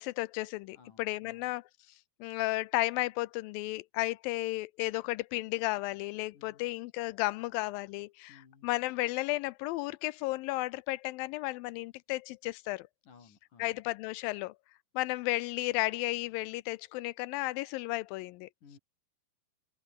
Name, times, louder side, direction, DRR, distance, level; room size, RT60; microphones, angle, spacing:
voice 1, 0.0-1.6 2.2-12.9 13.6-14.5 15.0-18.5, left 20 dB, 80° left, 2.2 m, -33 dB
voice 2, 0.7-1.5 6.3-6.7 8.3-8.7 13.0-13.8 18.6-18.8, left 5 dB, 55° left, 5.3 m, -58 dB
open air
omnidirectional pair, 4.4 m